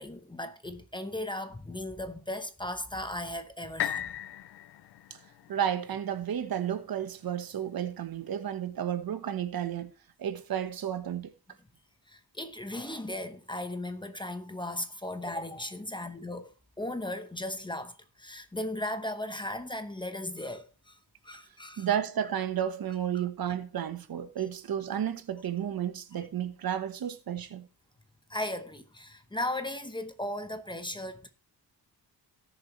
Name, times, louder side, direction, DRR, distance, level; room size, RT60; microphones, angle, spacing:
voice 1, 0.0-4.1 12.1-21.0 21.2-22.0 22.6-22.7 23.1-23.3 28.3-31.3, left 1 dB, 10° left, 0.9 m, -37 dB
sound 1, 3.8-7.7 8.3-8.4, left 12 dB, 80° left, 0.6 m, -38 dB
voice 2, 5.5-9.9 10.2-11.3 21.8-27.7, right 9 dB, 65° right, 1.2 m, -32 dB
18.0 x 7.2 x 3.1 m
wide cardioid pair, 160°, 39 cm